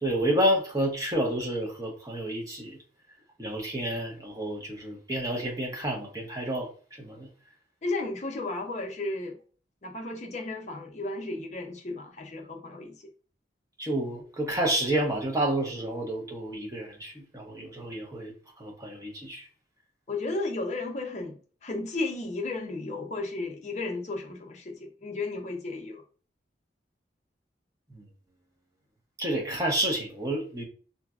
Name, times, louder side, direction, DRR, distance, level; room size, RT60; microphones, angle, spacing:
voice 1, 0.0-2.8 3.4-6.7 7.0-7.3 13.8-19.5 27.9-28.1 29.2-30.6, right 1 dB, 20° right, 0.7 m, -30 dB
voice 2, 7.8-9.3 9.8-13.0 20.1-26.0, left 2 dB, 40° left, 0.6 m, -34 dB
3.9 x 2.2 x 2.3 m
head